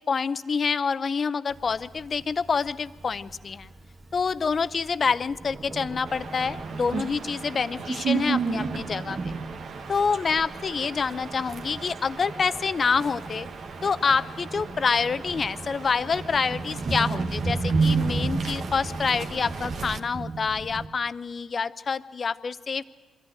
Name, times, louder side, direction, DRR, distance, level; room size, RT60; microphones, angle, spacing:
voice 1, 0.0-3.7 4.1-9.2 9.9-13.5 13.8-22.8, left 5 dB, 45° left, 15 dB, 0.7 m, -27 dB
Thunder, 1.5-20.9, right 3 dB, 40° right, 1.7 m, -34 dB
sound 1, 6.0-20.0, right 5 dB, 60° right, 1.3 m, -36 dB
23.0 x 14.0 x 9.1 m, 1.4 s
hypercardioid pair, 45°, 0 cm